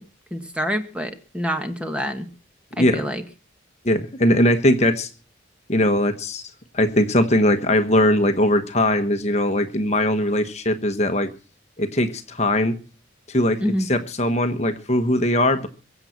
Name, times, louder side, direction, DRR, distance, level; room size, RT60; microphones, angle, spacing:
voice 1, 0.3-2.3 2.8-3.2 13.6-13.9, equal, 5° right, 7 dB, 1.4 m, -26 dB
voice 2, 3.8-5.1 5.7-6.4 6.7-11.3 11.8-12.7 13.3-15.7, left 1 dB, 35° left, 8 dB, 1.2 m, -20 dB
23.0 x 7.9 x 5.9 m, 0.39 s
head